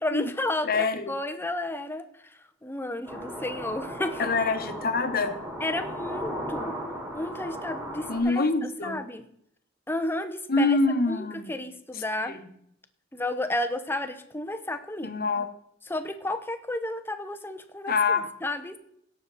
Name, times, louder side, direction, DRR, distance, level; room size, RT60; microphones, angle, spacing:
voice 1, 0.0-2.1 2.6-4.3 5.6-6.7 7.1-8.5 8.8-9.2 9.9-10.8 11.1-12.4 13.1-15.1 15.9-17.9 18.4-18.8, left 1 dB, 10° left, 9 dB, 0.8 m, -32 dB
voice 2, 0.6-1.1 4.2-5.4 8.1-9.0 10.5-11.5 11.9-12.4 15.0-15.5 17.9-18.3, left 3 dB, 50° left, 8 dB, 1.2 m, -25 dB
sound 1, 3.1-8.2, equal, 15° right, 3.5 m, -36 dB
17.5 x 6.8 x 4.1 m, 0.71 s
head